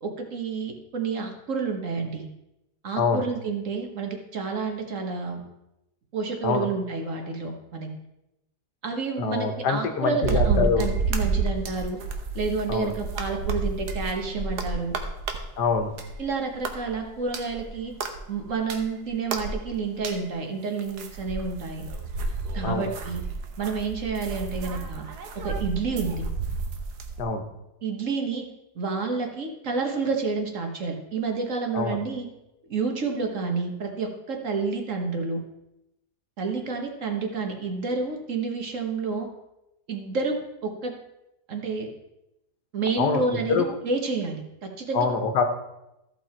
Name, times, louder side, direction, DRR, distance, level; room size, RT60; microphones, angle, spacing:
voice 1, 0.0-2.3 2.8-5.4 6.1-7.9 8.8-12.0 12.3-15.0 16.2-17.9 18.3-21.8 22.5-23.2 23.6-25.0 25.4-26.2 27.8-28.5 28.7-32.3 32.7-35.4 36.4-39.3 39.9-40.9 41.5-41.9 42.7-45.1, right 4 dB, 55° right, 3 dB, 1.5 m, -29 dB
voice 2, 9.2-10.9 12.7-12.9 15.6-15.9 22.6-22.9 27.2-27.4 31.7-32.0 43.0-43.7 44.9-45.4, left 5 dB, 80° left, 6 dB, 1.6 m, -25 dB
sound 1, 10.2-16.2 16.5-20.3 20.8-27.2, right 4 dB, 80° right, 1.5 m, -30 dB
14.0 x 5.7 x 4.4 m, 0.90 s
omnidirectional pair, 1.7 m